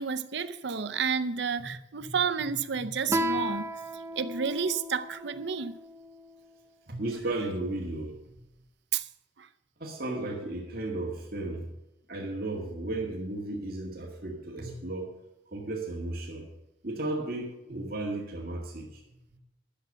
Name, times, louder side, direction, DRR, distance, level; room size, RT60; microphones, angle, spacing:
voice 1, 0.0-3.7 4.2-5.7 8.9-9.1 9.4-9.5, right 6 dB, 70° right, 0.6 m, -30 dB
Guitar, 3.1-6.3, equal, 15° right, 0.6 m, -34 dB
voice 2, 6.9-8.3 9.8-11.7 12.1-15.1 15.5-16.5 16.8-19.0, right 2 dB, 50° right, 2.0 m, -34 dB
12.0 x 6.9 x 6.7 m
head